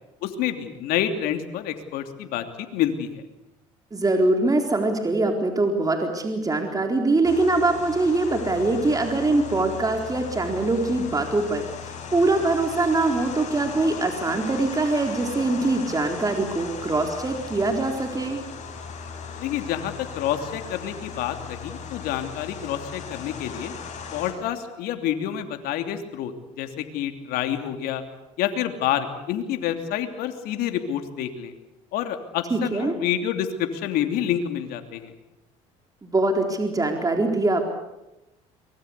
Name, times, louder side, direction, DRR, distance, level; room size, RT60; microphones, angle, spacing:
voice 1, 0.2-3.2 19.4-23.7 24.1-28.0 28.4-31.5 31.9-35.1, left 10 dB, 70° left, 7 dB, 3.0 m, -28 dB
voice 2, 3.9-18.4 32.5-32.9 36.0-37.6, right 2 dB, 20° right, 4 dB, 4.1 m, -23 dB
sound 1, 7.2-24.3, left 6 dB, 50° left, 7.4 m, -38 dB
24.0 x 21.5 x 8.3 m, 0.96 s
hypercardioid pair, 70°, 16 cm